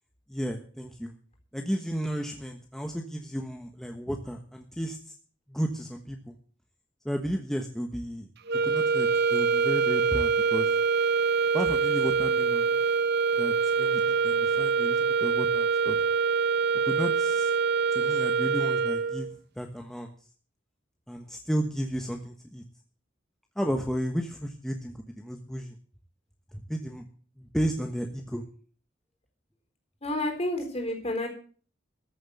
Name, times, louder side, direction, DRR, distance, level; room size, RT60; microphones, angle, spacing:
voice 1, 0.3-1.1 1.5-5.1 5.5-6.3 7.0-8.3 8.6-10.7 11.5-12.8 13.4-16.0 16.8-17.5 17.9-19.3 19.6-20.1 21.1-22.6 23.6-25.8 26.5-27.0 27.4-28.4, equal, ahead, 3 dB, 1.2 m, -33 dB
sound 1, 8.5-19.4, right 5 dB, 60° right, 0.9 m, -25 dB
voice 2, 30.0-31.3, left 1 dB, 35° left, 4 dB, 4.1 m, -30 dB
14.0 x 7.7 x 7.9 m, 0.43 s
head